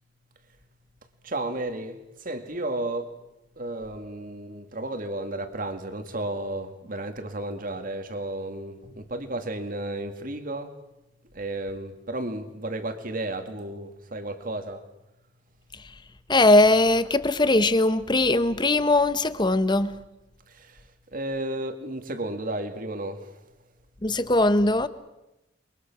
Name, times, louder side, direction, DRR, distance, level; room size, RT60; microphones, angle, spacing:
voice 1, 1.2-3.1 3.6-10.7 11.3-14.8 20.6-20.7 21.1-23.2, right 1 dB, 50° right, 2.2 m, -33 dB
voice 2, 16.3-19.9 24.0-24.9, left 2 dB, 25° left, 1.0 m, -20 dB
28.5 x 22.5 x 6.2 m
head